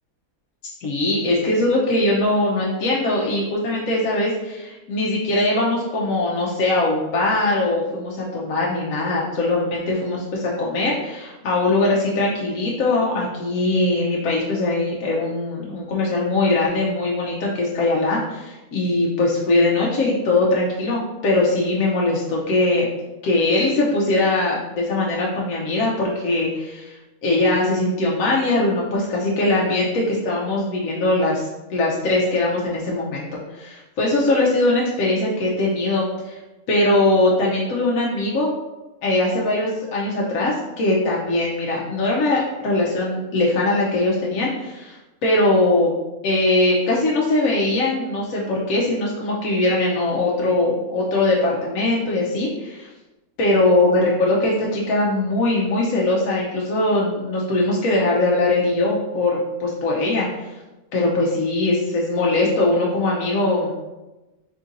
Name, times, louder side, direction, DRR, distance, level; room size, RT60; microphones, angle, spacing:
voice 1, 0.8-22.9 23.2-36.4 36.7-38.5 39.0-45.9 46.2-52.9 53.4-60.5 60.9-63.7, left 2 dB, 75° left, -4 dB, 1.0 m, -21 dB
3.9 x 3.7 x 2.5 m, 1.1 s
omnidirectional pair, 1.5 m